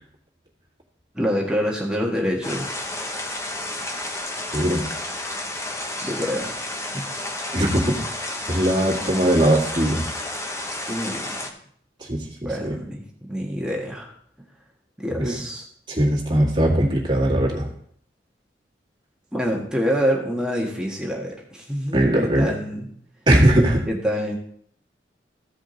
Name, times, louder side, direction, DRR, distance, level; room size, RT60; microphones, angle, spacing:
voice 1, 1.1-2.7 6.0-6.5 6.9-7.1 10.9-11.3 12.4-13.0 13.3-14.1 14.4-14.5 15.0-15.6 19.3-22.9 23.9-24.4, equal, 5° right, -1 dB, 1.4 m, -26 dB
sound 1, 2.4-11.5, left 1 dB, 15° left, 0.9 m, -31 dB
voice 2, 4.5-4.8 7.5-7.9 8.5-10.0 12.1-12.7 15.2-15.4 15.9-17.7 21.9-22.5 23.3-23.8, right 1 dB, 25° right, -3 dB, 1.9 m, -20 dB
15.0 x 5.0 x 3.9 m, 0.64 s
head